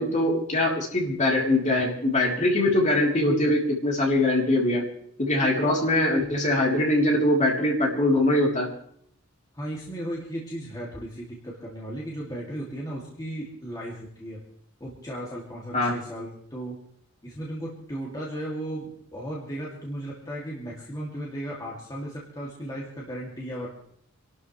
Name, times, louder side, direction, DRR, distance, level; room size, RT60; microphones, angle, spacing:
voice 1, 0.0-4.8 5.2-8.7 15.7-16.0, left 1 dB, 35° left, -2 dB, 3.4 m, -22 dB
voice 2, 9.5-14.4 14.8-16.8 17.2-23.7, right 1 dB, 20° left, -4 dB, 2.5 m, -35 dB
26.5 x 12.5 x 3.3 m, 0.65 s
head